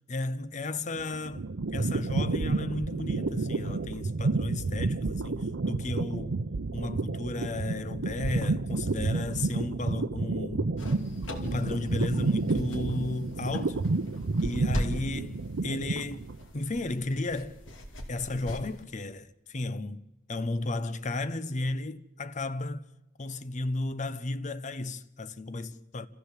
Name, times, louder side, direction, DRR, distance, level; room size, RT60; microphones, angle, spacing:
voice 1, 0.1-6.4 6.7-10.7 11.4-13.8 14.4-17.6 18.1-20.0 20.3-22.8 23.2-26.1, left 2 dB, 40° left, 0.8 m, -34 dB
sound 1, 1.0-16.4, right 3 dB, 80° right, 0.7 m, -30 dB
sound 2, 10.8-18.8, equal, 85° left, 2.6 m, -40 dB
26.0 x 15.0 x 7.5 m
head